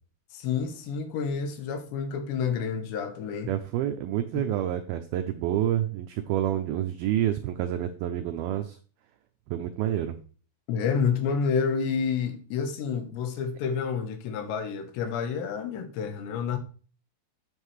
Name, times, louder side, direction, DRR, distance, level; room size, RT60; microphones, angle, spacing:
voice 1, 0.3-3.5 4.3-4.5 10.7-16.6, left 6 dB, 80° left, 3.3 m, -29 dB
voice 2, 3.5-8.8 9.5-10.1, right 11 dB, 85° right, 2.1 m, -28 dB
9.2 x 7.8 x 3.2 m
omnidirectional pair, 5.1 m